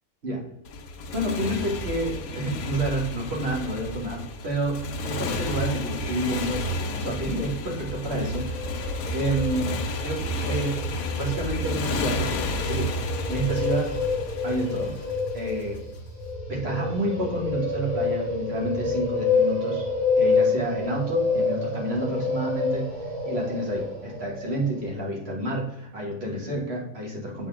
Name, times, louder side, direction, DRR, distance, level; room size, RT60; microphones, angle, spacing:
Motorcycle, 0.6-15.8, left 2 dB, 90° left, 1.2 m, -32 dB
voice 1, 1.1-8.6 9.1-9.7 10.0-10.8 11.2-12.9 13.3-13.9 14.4-15.0 15.3-15.8 16.5-19.9 20.2-22.9 23.3-27.5, right 1 dB, 50° right, -2 dB, 2.0 m, -29 dB
sound 1, 8.1-25.0, left 3 dB, 85° right, 2.3 m, -28 dB
8.4 x 4.2 x 3.6 m, 0.82 s
omnidirectional pair, 1.5 m